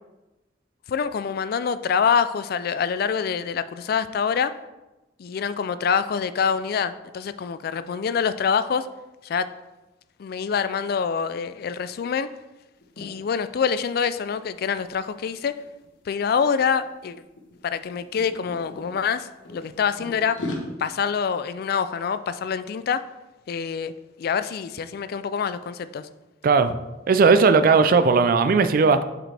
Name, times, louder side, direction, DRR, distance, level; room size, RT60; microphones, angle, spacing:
voice 1, 0.9-4.5 5.2-8.9 9.2-9.5 10.2-12.3 13.0-15.5 16.1-17.2 17.6-20.4 20.8-23.1 23.5-23.9 24.2-26.1, left 6 dB, 55° left, 13 dB, 0.3 m, -25 dB
sound 1, 12.8-13.1 13.5-13.7 14.0-15.9 16.6-16.9 17.1-18.9 19.4-20.6, left 1 dB, 85° left, 1.2 m, -37 dB
voice 2, 26.4-26.8 27.1-29.0, right 4 dB, 50° right, 11 dB, 0.4 m, -17 dB
7.5 x 4.9 x 3.3 m, 1.1 s
head